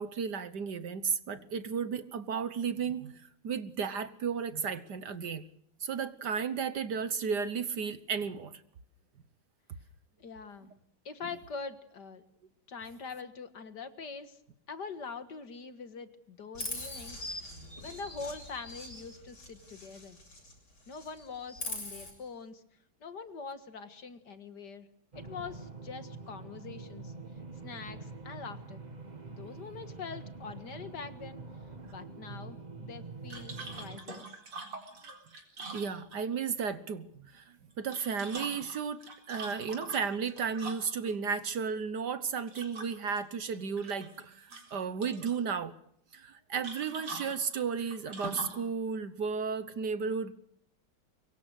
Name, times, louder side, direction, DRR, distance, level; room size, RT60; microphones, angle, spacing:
voice 1, 0.0-5.4 5.8-8.6 35.7-39.0 39.3-45.7 46.1-50.3, right 6 dB, 55° right, 14 dB, 1.6 m, -34 dB
voice 2, 10.2-10.7 11.1-12.2 12.7-14.4 14.7-17.2 17.8-20.2 20.9-22.6 23.0-24.9 25.1-27.1 27.6-28.9 29.3-31.4 31.9-34.3, left 5 dB, 55° left, 11 dB, 2.2 m, -43 dB
Chirp tweet, 16.5-20.6 20.9-22.1, left 2 dB, 75° left, 8.0 m, -42 dB
sound 1, 25.1-34.0, right 3 dB, 20° right, 1.6 m, -45 dB
sound 2, 33.3-36.4 37.7-41.1 42.5-43.2 43.5-44.2 44.5-45.4 46.6-48.6, right 3 dB, 85° right, 5.0 m, -44 dB
24.5 x 23.0 x 6.4 m, 0.70 s
omnidirectional pair, 2.3 m